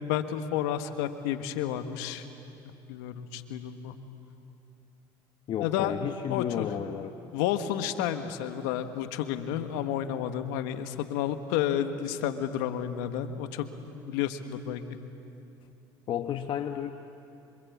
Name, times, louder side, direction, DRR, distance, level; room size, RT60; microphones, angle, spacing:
voice 1, 0.0-2.2 2.9-3.9 5.6-5.9 6.3-6.7 7.3-13.7 14.1-14.8, left 10 dB, 85° left, 9 dB, 1.5 m, -31 dB
voice 2, 5.5-7.1 16.1-16.9, left 9 dB, 55° left, 6 dB, 1.2 m, -32 dB
27.0 x 25.5 x 8.6 m, 2.8 s
supercardioid pair, 85°, 10 cm